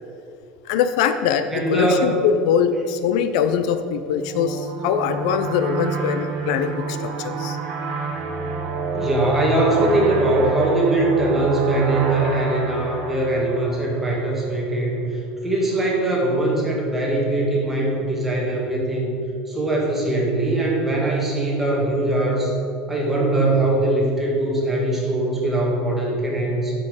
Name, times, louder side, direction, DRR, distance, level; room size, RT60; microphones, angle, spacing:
voice 1, 0.7-7.6, left 7 dB, 75° left, 10 dB, 0.5 m, -22 dB
voice 2, 1.5-2.2 8.9-19.1 19.4-22.5 22.9-26.7, right 2 dB, 5° right, -3 dB, 1.7 m, -21 dB
sound 1, 4.2-14.5, right 4 dB, 60° right, 1.4 m, -28 dB
8.3 x 5.5 x 6.4 m, 2.5 s
cardioid pair, 165°, 3 cm